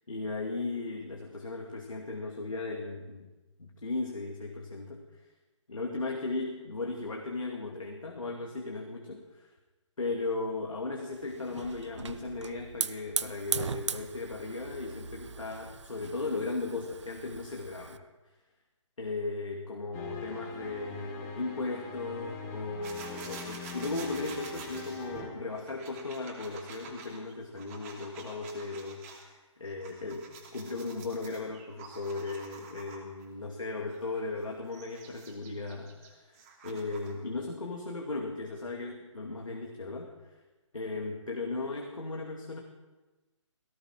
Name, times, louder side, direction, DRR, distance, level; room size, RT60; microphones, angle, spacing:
voice 1, 0.1-3.3 3.6-5.0 5.7-9.5 10.0-18.0 19.0-40.4 40.7-42.6, left 3 dB, 85° left, 0 dB, 2.6 m, -37 dB
Hiss / Fire, 11.1-18.0, right 6 dB, 65° right, 0.9 m, -39 dB
sound 1, 19.9-25.3, left 4 dB, 20° left, 2.0 m, -42 dB
sound 2, 22.8-29.2 29.6-33.2 33.8-37.2, right 4 dB, 25° right, 2.9 m, -49 dB
18.0 x 17.5 x 4.6 m, 1.1 s
figure-of-eight pair, 150°, 16 cm